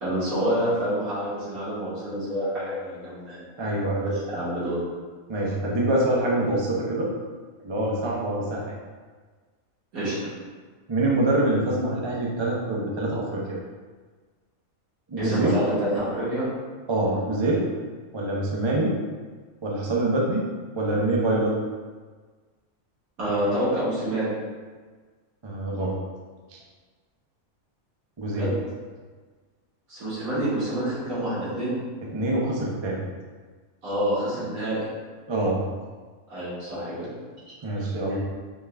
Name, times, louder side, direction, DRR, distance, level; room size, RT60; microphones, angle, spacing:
voice 1, 0.0-3.4 4.0-4.8 9.9-10.2 15.2-16.5 17.0-17.2 23.2-24.3 28.3-28.5 29.9-31.7 33.8-34.9 36.3-37.1 37.7-37.8, right 1 dB, 80° right, -10 dB, 2.2 m, -27 dB
voice 2, 3.6-4.0 5.3-7.1 7.6-8.7 10.9-13.6 15.1-15.5 16.9-17.6 18.1-18.9 19.6-20.4 20.8-21.5 25.4-26.0 26.5-26.6 28.2-28.5 32.1-33.0 35.3-35.6 37.6-38.2, right 1 dB, 35° right, -3 dB, 0.4 m, -25 dB
5.5 x 2.4 x 3.3 m, 1.4 s
omnidirectional pair, 1.5 m